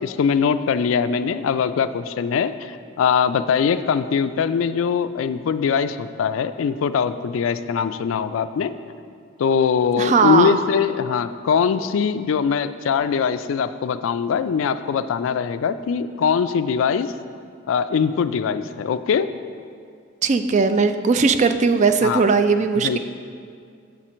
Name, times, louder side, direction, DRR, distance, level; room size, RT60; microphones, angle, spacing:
voice 1, 0.0-8.7 9.4-17.1 17.7-19.3 22.0-22.2 22.8-23.0, left 6 dB, 75° left, 12 dB, 0.3 m, -22 dB
voice 2, 9.8-10.6 20.2-23.0, right 4 dB, 35° right, 9 dB, 0.3 m, -18 dB
7.2 x 4.4 x 6.1 m, 2.3 s
head